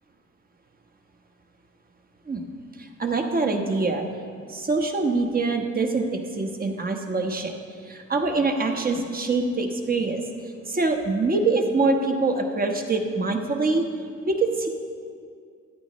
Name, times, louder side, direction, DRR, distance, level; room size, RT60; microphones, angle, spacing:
voice 1, 2.8-4.0 4.5-7.6 7.8-10.2 10.7-13.8 14.3-14.7, right 3 dB, 30° right, 3 dB, 1.1 m, -24 dB
13.5 x 10.0 x 3.1 m, 2.3 s
cardioid pair, 90°, 30 cm